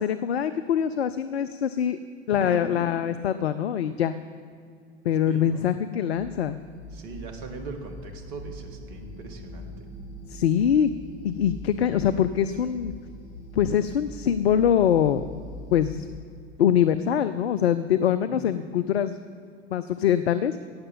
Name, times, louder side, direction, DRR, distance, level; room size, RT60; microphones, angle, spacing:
voice 1, 0.0-2.0 2.3-4.1 5.0-6.6 10.3-10.9 11.2-12.9 13.5-15.2 15.7-16.1 16.6-19.2 19.7-20.6, left 9 dB, 65° left, 12 dB, 0.6 m, -23 dB
voice 2, 2.4-2.9 5.3-5.6 6.9-9.9 18.3-18.6, right 3 dB, 50° right, 5 dB, 1.9 m, -39 dB
sound 1, 6.1-16.2, left 1 dB, 40° left, 2.8 m, -42 dB
17.5 x 6.7 x 7.3 m, 2.3 s
figure-of-eight pair, 90°, 33 cm